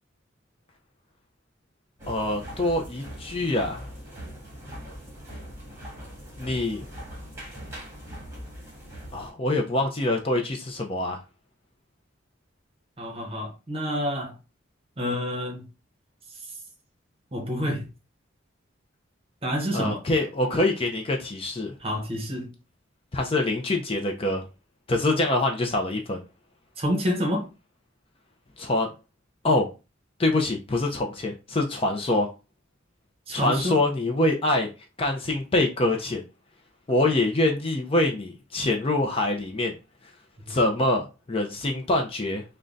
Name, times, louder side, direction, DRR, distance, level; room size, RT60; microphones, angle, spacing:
sound 1, 2.0-9.3, equal, 15° right, 1.5 m, -41 dB
voice 1, 2.1-3.9 6.4-6.8 9.1-11.2 19.7-21.7 23.1-24.4 24.9-26.2 28.6-28.9 29.4-29.7 30.2-32.3 33.3-34.7 35.0-36.2 36.9-39.7 40.5-42.4, left 2 dB, 30° left, 0.5 m, -25 dB
voice 2, 13.0-14.4 15.0-15.7 17.3-17.9 19.4-20.0 21.8-22.5 26.8-27.5 33.3-33.8 40.5-40.6, equal, 30° right, 1.0 m, -28 dB
3.7 x 2.2 x 3.8 m
head